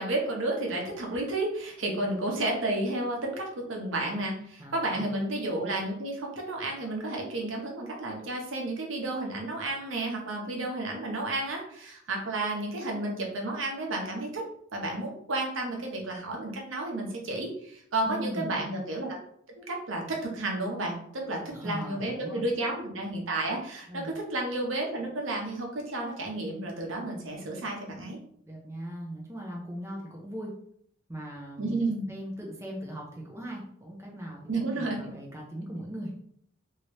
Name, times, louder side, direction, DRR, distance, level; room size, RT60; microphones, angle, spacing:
voice 1, 0.0-14.4 14.7-19.2 19.6-28.2 31.6-32.1 34.5-35.0, right 2 dB, 75° right, 0 dB, 0.8 m, -32 dB
voice 2, 4.6-5.1 18.0-18.6 21.5-22.4 23.9-24.2 28.4-30.5 31.1-36.2, equal, 15° right, -2 dB, 0.6 m, -39 dB
3.0 x 2.7 x 3.1 m, 0.66 s
head